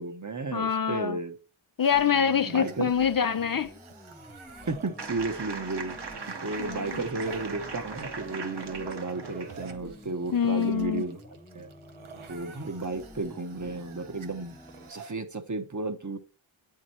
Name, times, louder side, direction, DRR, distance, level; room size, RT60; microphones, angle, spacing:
voice 1, 0.0-1.4 2.4-2.9 4.7-11.2 11.5-11.7 12.3-14.6 14.9-16.2, right 3 dB, 40° right, 1.0 m, -33 dB
voice 2, 0.5-1.2 1.8-3.7 6.6-7.0 10.3-11.0, left 7 dB, 45° left, 0.5 m, -25 dB
sound 1, 1.8-15.1, right 5 dB, 85° right, 0.9 m, -49 dB
sound 2, 1.9-14.9, left 1 dB, 5° left, 0.7 m, -49 dB
sound 3, 5.0-9.7, right 4 dB, 55° right, 1.2 m, -39 dB
8.5 x 4.8 x 4.3 m
cardioid pair, 40°, 48 cm